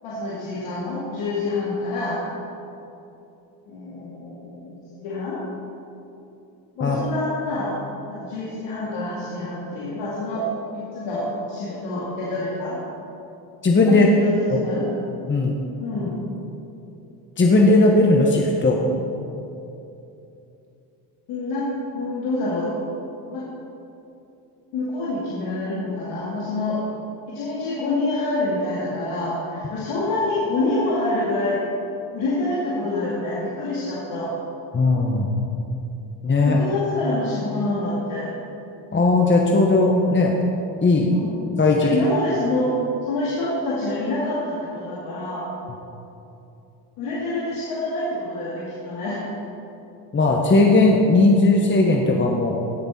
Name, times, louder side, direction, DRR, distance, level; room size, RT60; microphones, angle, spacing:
voice 1, 0.0-2.2 3.7-5.4 6.8-7.8 8.1-12.8 13.9-14.9 15.8-16.2 21.3-21.7 21.9-22.7 23.3-23.5 24.7-26.8 27.3-31.6 32.1-34.3 36.4-38.3 41.0-41.4 41.8-42.7 43.1-45.5 47.0-49.3, left 2 dB, 75° left, -7 dB, 2.4 m, -27 dB
voice 2, 13.6-14.1 15.3-15.6 17.4-18.8 34.7-35.3 36.2-36.6 38.9-40.3 40.8-41.1 41.6-41.9 50.1-52.5, left 2 dB, 25° left, 0 dB, 1.3 m, -17 dB
17.0 x 6.7 x 4.4 m, 2.8 s
supercardioid pair, 75°, 50 cm